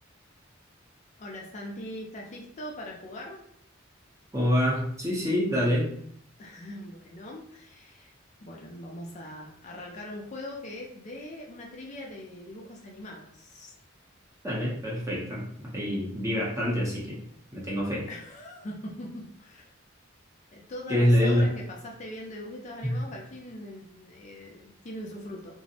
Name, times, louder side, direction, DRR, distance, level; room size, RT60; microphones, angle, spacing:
voice 1, 1.2-3.4 6.4-8.1 8.4-13.7 18.1-19.7 20.5-25.6, left 1 dB, 35° left, -1 dB, 0.4 m, -41 dB
voice 2, 4.3-5.9 14.4-17.2 17.5-18.1 20.9-21.5 22.8-23.0, equal, 15° right, -4 dB, 0.6 m, -26 dB
2.5 x 2.0 x 2.6 m, 0.64 s
head